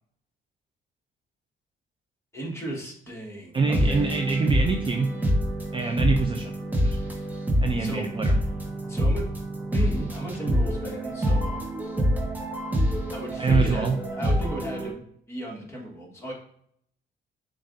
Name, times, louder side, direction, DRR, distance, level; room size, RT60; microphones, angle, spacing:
voice 1, 2.3-4.1 7.8-8.1 8.9-9.2 9.7-11.6 13.1-16.3, right 1 dB, 15° left, -2 dB, 1.6 m, -36 dB
voice 2, 3.5-5.1 5.7-6.5 6.8-7.0 7.6-8.4 13.4-14.0, right 4 dB, 25° right, 4 dB, 0.4 m, -25 dB
sound 1, 3.6-14.9, equal, 10° right, 1.0 m, -26 dB
6.7 x 2.5 x 2.6 m, 0.68 s
cardioid pair, 90°, 20 cm